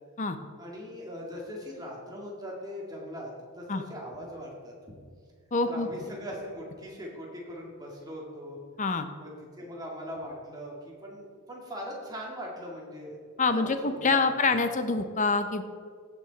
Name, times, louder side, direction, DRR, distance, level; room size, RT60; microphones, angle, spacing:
voice 1, 0.6-4.7 5.6-8.6 9.2-13.2 13.5-14.5, equal, 15° right, -2 dB, 2.0 m, -40 dB
voice 2, 5.5-5.9 8.8-9.1 13.4-15.6, left 4 dB, 35° left, 9 dB, 0.7 m, -26 dB
16.0 x 6.2 x 4.0 m, 2.1 s
head